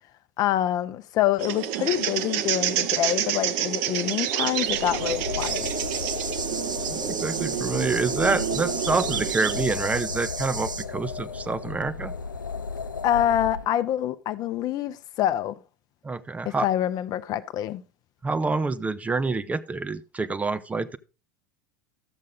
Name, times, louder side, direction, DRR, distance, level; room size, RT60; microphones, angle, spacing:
voice 1, 0.4-5.7 13.0-15.6 16.4-17.8, left 11 dB, 40° left, 0.6 m, -26 dB
sound 1, 1.4-9.6, right 11 dB, 50° right, 0.8 m, -29 dB
Soft Wind, 4.5-13.7, left 5 dB, 80° left, 0.4 m, -34 dB
sound 2, 5.4-10.8, right 4 dB, 85° right, 0.5 m, -35 dB
voice 2, 6.9-12.1 16.0-16.7 18.2-21.0, right 3 dB, 15° right, 0.5 m, -27 dB
12.5 x 7.5 x 3.8 m
figure-of-eight pair, 75°, 10 cm